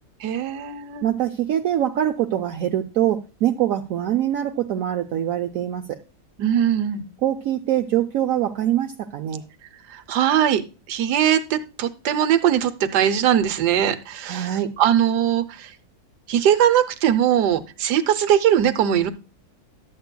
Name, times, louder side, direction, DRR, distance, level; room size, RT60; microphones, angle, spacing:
voice 1, 0.2-1.1 6.4-7.0 9.9-10.6 10.9-15.7 16.3-19.1, right 10 dB, 85° right, 11 dB, 1.3 m, -20 dB
voice 2, 1.0-5.8 7.2-9.4 14.2-14.7, right 11 dB, 70° right, 4 dB, 0.9 m, -23 dB
12.5 x 8.0 x 2.2 m, 0.31 s
omnidirectional pair, 1.7 m